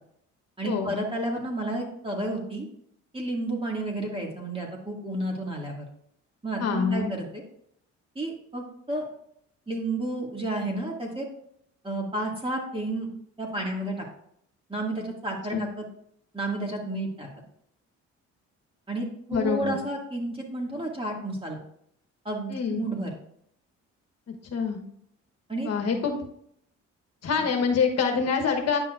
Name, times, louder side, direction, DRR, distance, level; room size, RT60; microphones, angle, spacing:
voice 1, 0.6-2.7 3.1-5.9 6.4-7.4 8.2-9.0 9.7-11.3 11.8-13.1 13.4-14.0 14.7-15.9 16.3-17.3 18.9-21.6 22.2-23.1 25.5-25.7, right 1 dB, 20° right, -1 dB, 2.1 m, -31 dB
voice 2, 6.6-7.1 15.5-15.7 19.3-19.8 22.5-22.8 24.5-24.8 25.6-26.2 27.2-28.8, left 5 dB, 55° left, 4 dB, 1.2 m, -25 dB
9.7 x 5.7 x 2.5 m, 0.70 s
cardioid pair, 90°, 30 cm